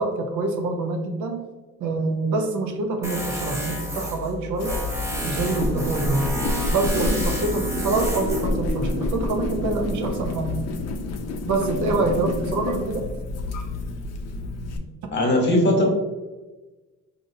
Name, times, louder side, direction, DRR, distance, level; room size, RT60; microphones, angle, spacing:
voice 1, 0.0-1.4 1.8-4.8 5.2-6.3 6.7-10.6 11.5-13.1, right 3 dB, 75° right, 3 dB, 0.6 m, -26 dB
Tools, 3.0-9.5, left 1 dB, 10° right, 0.6 m, -31 dB
sound 1, 4.6-14.8, left 2 dB, 55° left, 0.5 m, -29 dB
sound 2, 5.1-10.2, right 1 dB, 45° right, 0.8 m, -33 dB
voice 2, 15.1-15.8, left 1 dB, 35° left, -1 dB, 1.1 m, -19 dB
4.0 x 2.7 x 2.6 m, 1.2 s
cardioid pair, 90°, 30 cm